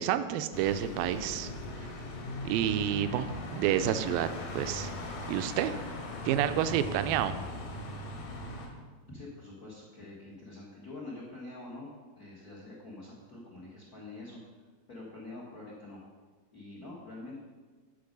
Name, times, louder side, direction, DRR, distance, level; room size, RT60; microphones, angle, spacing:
voice 1, 0.0-1.5 2.5-4.3 4.5-4.9 5.3-5.8 6.3-7.4, right 10 dB, 80° right, 10 dB, 2.2 m, -29 dB
sound 1, 0.5-8.7, left 1 dB, 75° left, 3.1 m, -39 dB
voice 2, 9.1-11.9 12.2-14.4 14.9-16.0 16.5-17.4, left 2 dB, 90° left, -5 dB, 0.8 m, -45 dB
10.5 x 5.4 x 5.3 m, 1.4 s
omnidirectional pair, 4.4 m